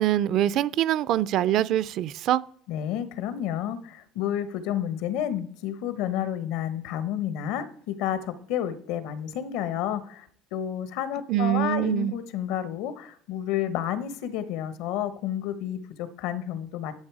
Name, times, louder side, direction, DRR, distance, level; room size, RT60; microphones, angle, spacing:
voice 1, 0.0-2.4 11.3-12.1, right 12 dB, 45° right, 0.4 m, -24 dB
voice 2, 2.7-16.9, left 10 dB, 70° left, 1.1 m, -30 dB
11.5 x 7.0 x 4.8 m
cardioid pair, 160°, 0 cm